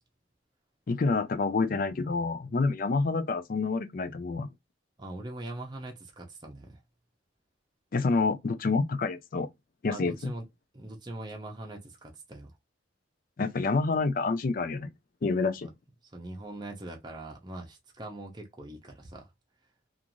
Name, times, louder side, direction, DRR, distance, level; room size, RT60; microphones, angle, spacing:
voice 1, 0.9-4.5 7.9-9.5 9.8-10.3 13.4-14.9 15.2-15.7, left 4 dB, 45° left, 0.4 m, -28 dB
voice 2, 5.0-6.8 9.9-10.5 10.7-12.5 15.6-15.7 16.1-19.3, right 2 dB, 20° right, 0.6 m, -42 dB
2.5 x 2.4 x 2.9 m
head